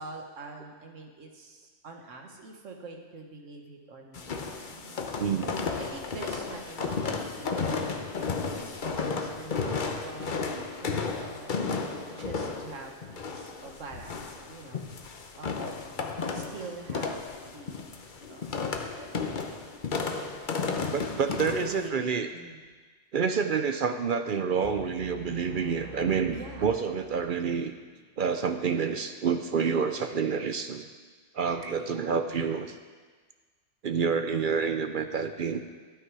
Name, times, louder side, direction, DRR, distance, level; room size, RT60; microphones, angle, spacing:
voice 1, 0.0-5.3 5.8-7.9 8.2-10.4 10.8-11.6 12.1-15.0 15.4-16.1 16.3-17.2 17.5-18.0 18.3-19.1 19.3-19.6 19.9-20.2 21.1-22.6 26.3-26.7 31.8-32.1 34.0-34.3, right 3 dB, 85° right, 2 dB, 1.6 m, -45 dB
sound 1, 4.1-21.9, left 4 dB, 45° left, 0.9 m, -33 dB
voice 2, 5.2-5.6 10.5-10.6 20.9-22.3 23.1-27.7 28.2-30.9 31.3-32.7 33.8-35.6, right 6 dB, 55° right, 8 dB, 0.6 m, -28 dB
sound 2, 24.6-27.7, equal, 10° left, 1.7 m, -47 dB
12.5 x 9.0 x 4.8 m, 1.4 s
omnidirectional pair, 1.3 m